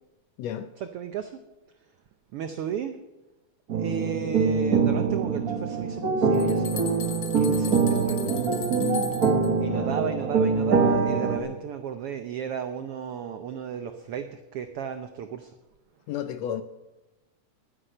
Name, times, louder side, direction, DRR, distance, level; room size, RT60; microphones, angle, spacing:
voice 1, 0.4-0.7 8.8-9.1 9.7-10.0 16.1-16.6, left 10 dB, 75° left, 1.6 m, -32 dB
voice 2, 0.9-1.3 2.3-2.9 3.7-6.9 7.4-8.3 9.6-15.5, right 8 dB, 80° right, 1.3 m, -34 dB
sound 1, 3.7-11.4, right 5 dB, 45° right, 1.3 m, -24 dB
sound 2, 5.9-9.5, left 8 dB, 55° left, 1.9 m, -39 dB
11.5 x 10.0 x 6.6 m
omnidirectional pair, 3.5 m